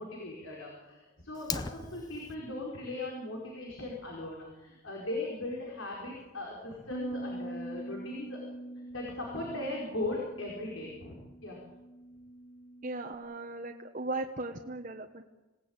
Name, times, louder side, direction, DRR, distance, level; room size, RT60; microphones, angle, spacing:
voice 1, 0.0-8.4 8.7-11.6, left 2 dB, 80° left, -2 dB, 5.0 m, -39 dB
Fire, 1.3-2.3, left 4 dB, 20° left, 0.7 m, -38 dB
Bass guitar, 6.9-13.2, right 1 dB, 65° left, 1.7 m, -43 dB
voice 2, 12.8-15.2, right 2 dB, 40° right, 2 dB, 1.2 m, -37 dB
26.5 x 18.0 x 8.9 m, 1.1 s
head